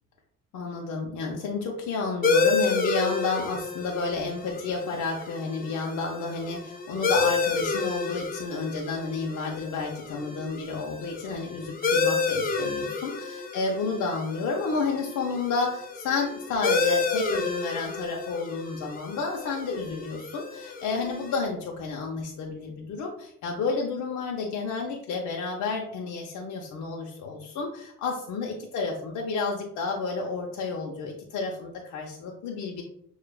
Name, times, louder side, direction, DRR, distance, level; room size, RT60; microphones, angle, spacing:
voice 1, 0.5-32.8, left 4 dB, 75° left, 0 dB, 0.6 m, -31 dB
sound 1, 2.2-21.4, left 4 dB, 30° left, 0.6 m, -30 dB
6.5 x 2.4 x 2.3 m, 0.69 s
cardioid pair, 90°, 30 cm